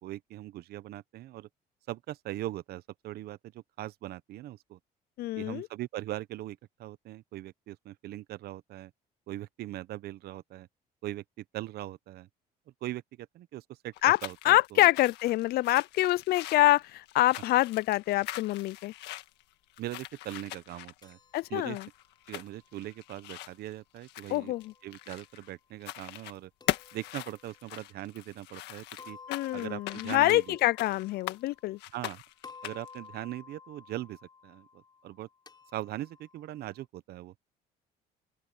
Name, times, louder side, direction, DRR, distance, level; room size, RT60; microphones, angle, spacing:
voice 1, 0.0-1.5 1.9-4.8 5.3-8.9 9.3-10.7 11.0-12.3 12.8-13.9 14.2-14.9 19.8-21.2 21.5-21.8 22.3-24.5 24.8-26.5 26.9-29.2 29.5-30.6 31.9-32.2 32.6-35.3 35.7-37.3, right 15 dB, 70° right, 0.8 m, -40 dB
voice 2, 5.2-5.7 14.0-14.2 14.4-18.9 21.3-21.9 24.3-24.7 29.3-31.8, left 17 dB, 65° left, 0.4 m, -26 dB
sound 1, 13.9-25.5 25.8-26.4 26.7-31.4 31.8-33.0, left 15 dB, 85° left, 1.7 m, -41 dB
sound 2, 21.0-23.1 24.3-25.3 26.6-27.8 29.0-32.1 32.4-36.8, left 5 dB, 25° left, 4.7 m, -54 dB
open air
cardioid pair, 110°, 17 cm